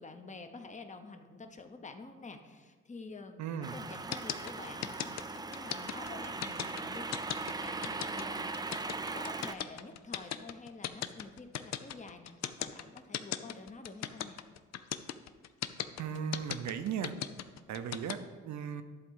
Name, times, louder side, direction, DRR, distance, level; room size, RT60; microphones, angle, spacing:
voice 1, 0.0-8.5 9.1-14.4, left 3 dB, 25° left, 7 dB, 0.9 m, -48 dB
voice 2, 3.4-3.8 16.0-17.1 17.7-18.8, right 8 dB, 65° right, 10 dB, 0.8 m, -37 dB
sound 1, 3.6-9.5, right 3 dB, 15° right, 0.4 m, -39 dB
sound 2, 4.1-18.1, left 11 dB, 60° left, 0.5 m, -37 dB
11.0 x 3.7 x 6.3 m, 1.4 s
cardioid pair, 90°, 30 cm